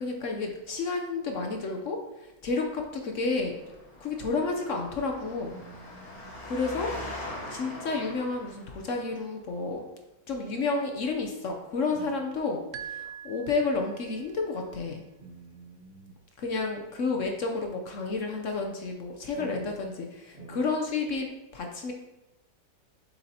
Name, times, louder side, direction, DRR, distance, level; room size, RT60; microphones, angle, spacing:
voice 1, 0.0-3.6 4.0-5.5 6.4-6.9 7.5-9.8 10.3-15.0 16.4-21.3 21.5-21.9, left 3 dB, 60° left, 2 dB, 0.9 m, -31 dB
Engine, 3.4-9.0, left 1 dB, 40° left, 1.8 m, -42 dB
voice 2, 5.5-6.4 11.9-12.1 15.2-16.2 19.3-19.7 20.3-20.6, right 3 dB, 35° right, -5 dB, 1.3 m, -46 dB
sound 1, 12.7-14.3, right 9 dB, 75° right, 0.7 m, -42 dB
7.2 x 6.9 x 2.8 m, 0.99 s
omnidirectional pair, 1.9 m